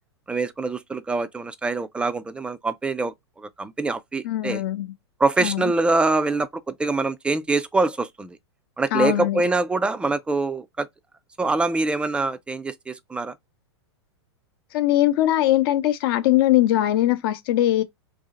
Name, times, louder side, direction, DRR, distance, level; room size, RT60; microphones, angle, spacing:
voice 1, 0.3-4.6 5.2-8.4 8.8-10.9 11.4-13.3, right 3 dB, 5° right, 0.3 m, -24 dB
voice 2, 4.2-4.9 5.4-5.7 8.9-9.4 14.7-17.8, left 14 dB, 55° left, 0.7 m, -21 dB
2.9 x 2.7 x 3.6 m
hypercardioid pair, 115°, 15 cm